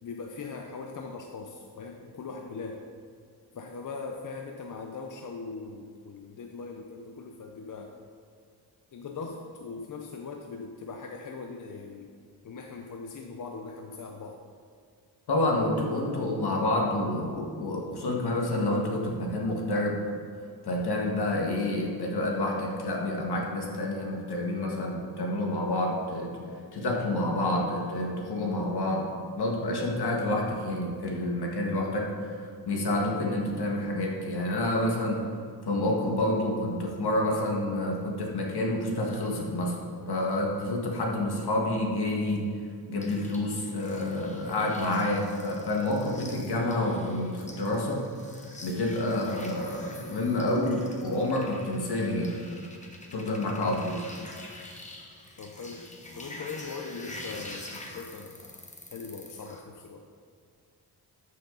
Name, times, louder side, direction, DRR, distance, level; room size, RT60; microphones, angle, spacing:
voice 1, 0.0-2.8 3.5-7.9 8.9-12.1 12.4-14.4 55.4-55.8 56.2-58.6 58.9-60.0, left 4 dB, 50° left, 3 dB, 0.6 m, -40 dB
voice 2, 15.3-20.0 20.6-26.4 26.7-29.1 29.4-35.2 35.6-39.8 40.1-42.4 42.9-48.0 48.6-52.3 53.1-54.0, left 1 dB, 70° left, -1 dB, 1.8 m, -28 dB
sound 1, 43.0-59.6, left 1 dB, 20° left, 0.9 m, -46 dB
13.5 x 6.5 x 3.9 m, 2.2 s
wide cardioid pair, 180°, 40 cm